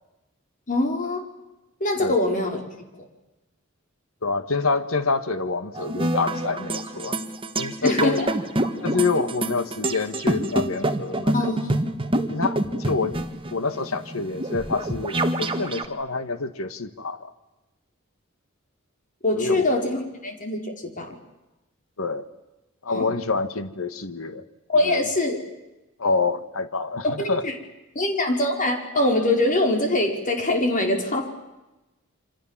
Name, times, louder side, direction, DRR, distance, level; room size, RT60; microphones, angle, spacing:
voice 1, 0.7-1.2 1.8-2.6 7.8-8.3 11.3-11.8 19.2-21.1 22.9-23.1 24.7-25.4 27.0-27.5 27.9-31.3, left 1 dB, 40° left, 3 dB, 5.0 m, -23 dB
voice 2, 4.2-7.2 7.5-8.2 8.8-11.6 12.3-13.2 13.5-17.3 19.3-19.7 22.0-22.3 22.8-24.4 24.8-25.0 26.0-27.4, left 4 dB, 85° left, 11 dB, 1.6 m, -27 dB
sound 1, 5.7-15.9, right 1 dB, 25° right, 1.7 m, -27 dB
28.0 x 26.0 x 7.5 m, 1.0 s
head